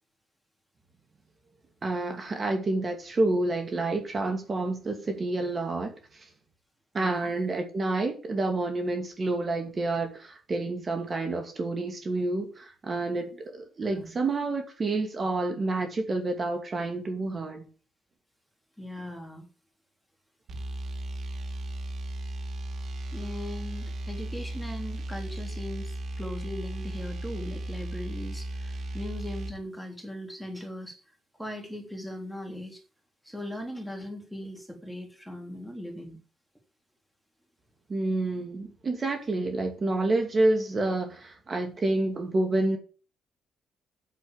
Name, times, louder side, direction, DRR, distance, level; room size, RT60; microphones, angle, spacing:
voice 1, 1.8-6.3 6.9-17.6 37.9-42.8, right 2 dB, 35° right, 5 dB, 2.4 m, -29 dB
voice 2, 6.9-7.3 13.9-14.1 18.8-19.5 23.1-31.0 31.4-32.8 33.2-36.2, left 1 dB, ahead, 3 dB, 3.4 m, -39 dB
sound 1, 20.5-29.6, right 1 dB, 60° right, 2.6 m, -36 dB
8.2 x 7.6 x 7.3 m, 0.36 s
cardioid pair, 90°, 0 cm